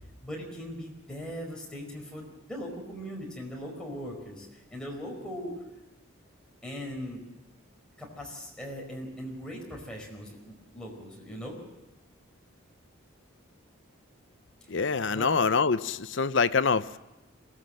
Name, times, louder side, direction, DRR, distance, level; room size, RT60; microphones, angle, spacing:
voice 1, 0.2-4.5 4.7-5.5 6.6-7.2 8.0-11.5 15.1-15.3, equal, 5° left, -2 dB, 4.9 m, -39 dB
voice 2, 14.7-17.0, left 5 dB, 60° left, 13 dB, 0.6 m, -25 dB
23.0 x 18.0 x 7.6 m, 1.1 s
head